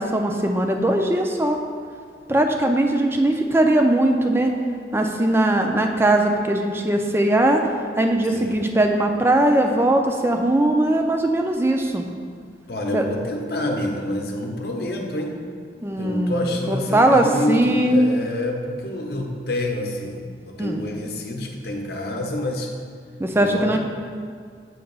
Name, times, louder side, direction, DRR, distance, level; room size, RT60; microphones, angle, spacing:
voice 1, 0.0-1.6 2.3-4.5 4.9-7.6 8.0-12.0 12.9-13.0 15.8-18.0 20.6-20.9 23.2-23.8, right 1 dB, 15° right, 3 dB, 0.4 m, -20 dB
voice 2, 8.3-8.6 12.7-15.4 16.0-22.7 23.3-23.8, left 1 dB, 60° left, 1 dB, 0.8 m, -27 dB
7.9 x 2.9 x 5.3 m, 2.1 s
head